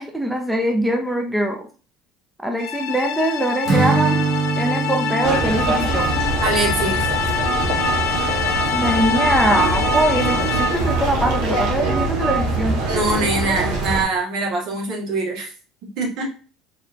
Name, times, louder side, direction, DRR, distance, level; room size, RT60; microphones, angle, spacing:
voice 1, 0.0-1.7 2.4-4.2 4.6-6.1 8.7-12.8, right 1 dB, 5° right, 2 dB, 0.6 m, -22 dB
sound 1, 2.6-11.0, left 8 dB, 75° left, 0.6 m, -25 dB
Acoustic guitar / Strum, 3.6-7.6, right 3 dB, 30° right, 1.2 m, -24 dB
sound 2, 5.2-14.0, right 3 dB, 80° right, 1.6 m, -23 dB
voice 2, 6.4-7.1 12.9-15.5 16.0-16.3, right 3 dB, 65° right, -2 dB, 2.0 m, -23 dB
4.8 x 3.1 x 2.8 m, 0.37 s
cardioid pair, 125°, 0 cm